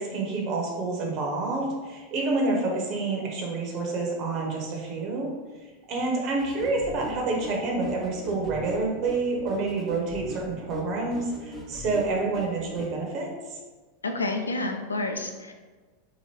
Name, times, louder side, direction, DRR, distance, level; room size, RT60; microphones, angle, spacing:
voice 1, 0.0-5.3 5.9-13.6, right 3 dB, 45° right, 0 dB, 0.7 m, -28 dB
sound 1, 6.4-12.9, left 1 dB, 20° left, 0.7 m, -41 dB
voice 2, 14.0-15.5, left 2 dB, 85° left, 5 dB, 0.3 m, -29 dB
2.8 x 2.5 x 3.0 m, 1.3 s
figure-of-eight pair, 90°, 0 cm